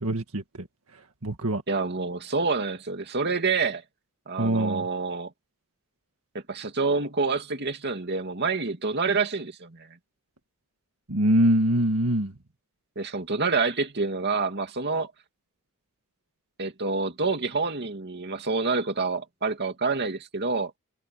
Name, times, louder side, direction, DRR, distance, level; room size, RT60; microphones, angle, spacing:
voice 1, 0.0-0.4 1.2-1.6 4.4-4.8 11.1-12.3, right 1 dB, 65° right, 1.9 m, -23 dB
voice 2, 1.7-3.8 4.3-5.3 6.5-9.9 13.0-15.1 16.6-20.7, right 4 dB, 50° right, 2.5 m, -27 dB
head